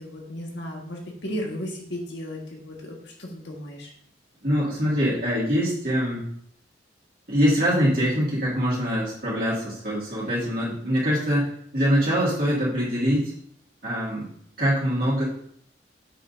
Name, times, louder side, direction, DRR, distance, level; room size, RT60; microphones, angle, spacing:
voice 1, 0.0-3.9, equal, 80° left, 0 dB, 1.7 m, -35 dB
voice 2, 4.4-6.2 7.3-13.3 13.8-14.2 14.6-15.2, equal, 50° right, -8 dB, 2.2 m, -23 dB
7.7 x 5.9 x 2.7 m, 0.66 s
head